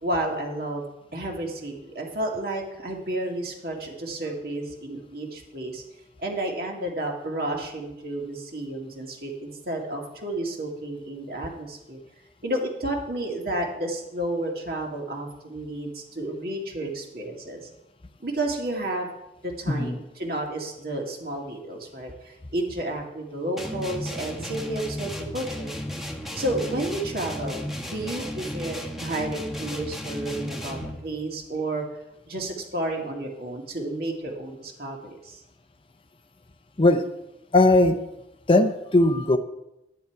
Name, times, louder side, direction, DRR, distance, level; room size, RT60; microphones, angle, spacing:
voice 1, 0.0-0.8 1.1-5.8 6.2-12.0 12.4-17.6 18.2-19.1 19.4-25.7 26.3-31.8 32.3-35.4, right 1 dB, 55° right, 0 dB, 2.1 m, -31 dB
voice 2, 19.7-20.0 36.8-37.0 37.5-38.0 38.5-39.4, left 2 dB, 30° left, 8 dB, 0.6 m, -19 dB
sound 1, 23.6-31.1, equal, ahead, 1.2 m, -34 dB
10.5 x 9.7 x 4.6 m, 0.90 s
head